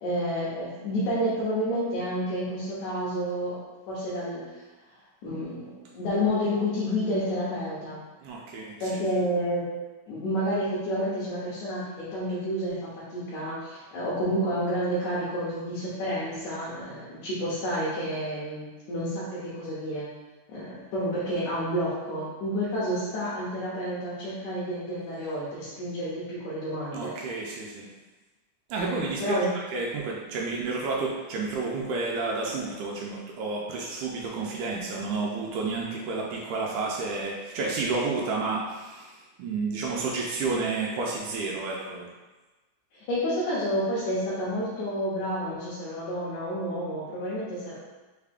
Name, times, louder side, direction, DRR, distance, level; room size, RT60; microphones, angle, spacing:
voice 1, 0.0-3.6 3.9-4.4 5.2-8.0 8.8-9.6 10.1-20.1 20.5-27.1 29.2-29.5 42.9-47.7, equal, 80° left, -10 dB, 2.4 m, -30 dB
voice 2, 8.2-9.0 26.9-27.9 28.7-29.3 29.7-42.1, right 3 dB, 85° right, -3 dB, 2.0 m, -31 dB
5.6 x 2.4 x 3.4 m, 1.2 s
omnidirectional pair, 3.3 m